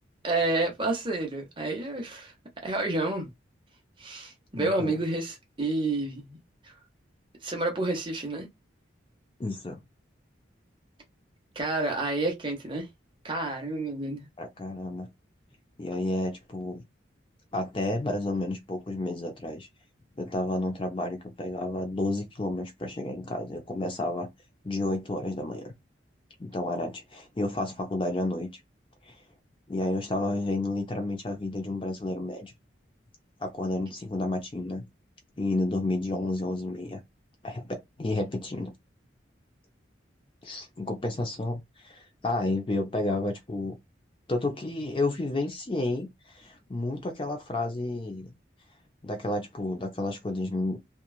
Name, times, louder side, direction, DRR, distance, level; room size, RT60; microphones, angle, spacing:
voice 1, 0.2-2.3 2.6-3.3 4.0-6.4 7.4-8.5 11.5-12.9 13.2-14.2, right 2 dB, 25° right, 0.9 m, -29 dB
voice 2, 4.5-5.0 9.4-9.8 14.4-15.1 15.8-16.8 17.5-19.7 20.2-24.3 24.6-25.7 26.4-28.5 29.1-29.2 29.7-32.5 33.4-34.9 35.4-37.0 37.4-38.7 40.4-43.8 44.3-48.3 49.0-50.8, left 2 dB, 25° left, 0.5 m, -31 dB
2.9 x 2.3 x 2.3 m
head